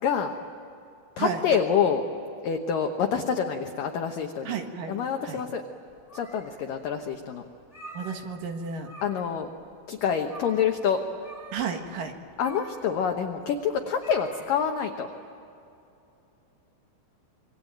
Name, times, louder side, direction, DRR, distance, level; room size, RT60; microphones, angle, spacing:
voice 1, 0.0-0.3 1.2-2.0 2.4-4.6 4.9-5.6 6.1-7.4 9.0-9.5 9.9-11.0 12.4-15.1, left 7 dB, 75° left, 4 dB, 2.0 m, -27 dB
voice 2, 4.5-5.0 5.2-5.4 7.9-8.9 11.5-12.1, right 6 dB, 60° right, 5 dB, 2.6 m, -32 dB
sound 1, 5.9-6.8 7.1-7.2 7.6-8.5 8.8-9.4 9.7-9.8 10.2-10.8 11.2-14.8, right 1 dB, 10° left, 3.6 m, -46 dB
26.5 x 24.5 x 9.2 m, 2.7 s
omnidirectional pair, 5.6 m